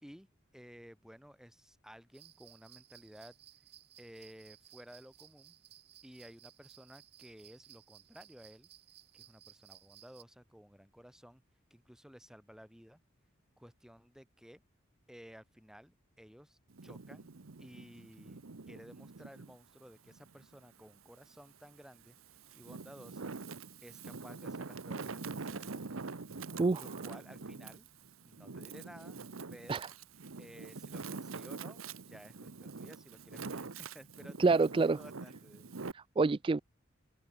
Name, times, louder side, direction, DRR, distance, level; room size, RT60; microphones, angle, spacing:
voice 1, 0.0-3.4 4.0-5.6 6.0-8.7 9.1-11.4 11.7-13.0 13.6-14.6 15.1-18.4 18.7-22.2 22.5-23.3 23.8-26.2 26.8-27.9 28.2-29.2 29.5-29.8 30.4-33.7 33.9-35.8, equal, 5° right, 3.8 m, -55 dB
sound 1, 2.1-10.2, right 13 dB, 50° right, 4.2 m, -59 dB
Wind, 16.7-19.5 20.1-21.3 22.0-35.9, right 4 dB, 85° right, 1.0 m, -45 dB
voice 2, 34.4-35.0 35.9-36.6, right 3 dB, 25° right, 0.3 m, -27 dB
open air
head